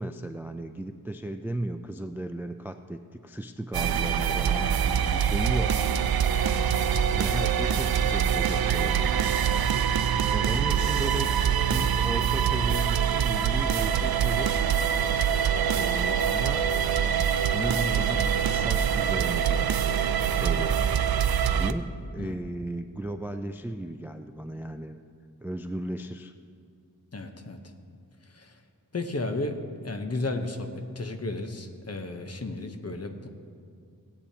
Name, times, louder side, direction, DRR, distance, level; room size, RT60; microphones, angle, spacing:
voice 1, 0.0-5.8 7.1-9.5 10.3-11.3 11.7-14.7 15.8-16.7 17.5-19.8 20.3-20.9 21.5-25.0 25.4-26.3, right 1 dB, 5° right, 8 dB, 0.3 m, -35 dB
sound 1, 3.7-21.7, right 8 dB, 70° right, 0.5 m, -24 dB
voice 2, 27.1-27.6 28.4-28.5 28.9-29.6 29.8-30.7 31.0-33.3, left 2 dB, 40° left, 6 dB, 0.9 m, -33 dB
19.0 x 8.5 x 2.8 m, 2.2 s
wide cardioid pair, 80°, 38 cm